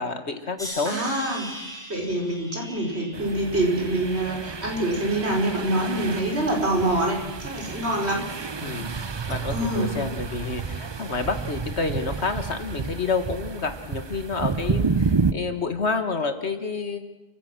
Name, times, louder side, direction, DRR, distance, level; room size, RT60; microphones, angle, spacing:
voice 1, 0.0-1.0 7.6-7.7 8.6-17.1, left 4 dB, 65° left, 8 dB, 2.0 m, -29 dB
sound 1, 0.6-5.7 6.2-6.9 7.6-7.9, equal, 5° left, 5.9 m, -42 dB
voice 2, 0.9-7.2 7.4-8.3 9.5-9.9, right 1 dB, 60° right, 0 dB, 5.2 m, -25 dB
sound 2, 3.1-15.3, right 4 dB, 30° right, 0.5 m, -30 dB
29.5 x 16.0 x 6.1 m, 1.1 s
omnidirectional pair, 1.2 m